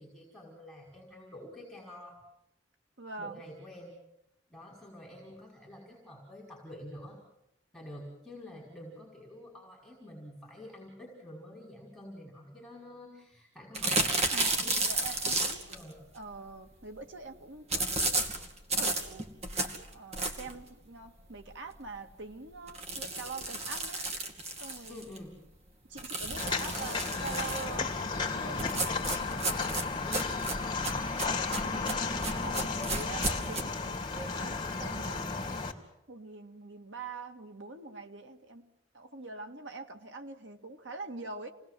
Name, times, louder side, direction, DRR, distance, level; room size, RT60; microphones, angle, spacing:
voice 1, 0.0-2.2 3.2-3.9 4.5-7.2 7.7-14.8 15.7-16.0 24.9-25.4 30.0-32.0, left 1 dB, ahead, -3 dB, 5.4 m, -48 dB
voice 2, 3.0-3.4 14.3-14.6 14.8-15.6 16.1-17.9 18.7-19.3 19.9-24.0 24.6-25.0 25.9-28.7 31.7-31.9 32.4-35.3 36.1-41.5, right 3 dB, 85° right, 5 dB, 2.0 m, -44 dB
sound 1, 13.7-15.8 17.7-20.6 21.1-21.2 21.5-21.6 21.9-22.0 22.7-25.2 26.0-27.8 28.6-33.6, right 2 dB, 35° right, 2.6 m, -33 dB
Walk footsteps, 26.4-35.7, left 4 dB, 25° left, 2.7 m, -33 dB
29.0 x 19.5 x 7.7 m, 0.84 s
head